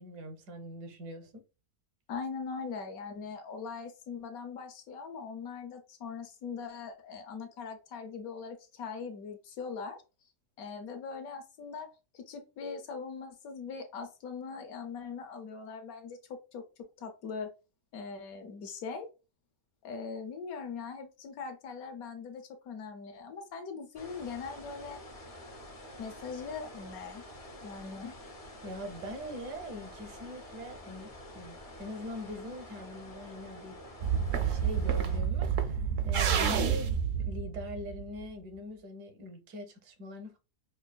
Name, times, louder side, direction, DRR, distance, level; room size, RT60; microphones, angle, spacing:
voice 1, 0.0-1.4 28.6-33.8 34.4-40.4, left 1 dB, 85° right, 1.4 m, -42 dB
voice 2, 2.1-10.0 10.6-11.9 12.1-16.2 16.5-16.6 17.0-17.5 17.9-19.1 19.8-25.0 26.0-27.2 27.6-28.1, left 5 dB, 70° left, 1.1 m, -41 dB
sound 1, 23.9-35.2, left 1 dB, 45° left, 0.4 m, -48 dB
sound 2, 34.0-38.2, right 7 dB, 65° right, 0.8 m, -29 dB
5.3 x 2.4 x 2.2 m
omnidirectional pair, 1.7 m